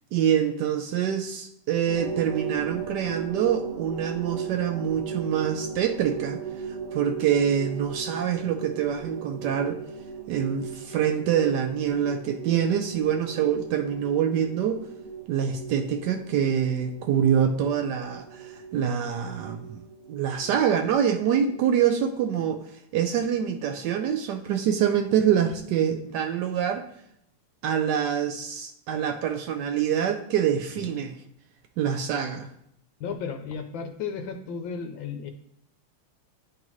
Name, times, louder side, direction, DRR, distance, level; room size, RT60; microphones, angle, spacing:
voice 1, 0.1-6.4 6.7-9.8 10.3-14.9 15.3-19.8 20.1-26.9 27.6-31.1 31.8-32.5, right 8 dB, 85° right, 5 dB, 0.9 m, -25 dB
sound 1, 1.9-21.6, right 7 dB, 60° right, 1.5 m, -37 dB
voice 2, 33.0-35.3, left 6 dB, 70° left, 5 dB, 1.2 m, -34 dB
10.5 x 3.9 x 3.1 m, 0.73 s
omnidirectional pair, 2.4 m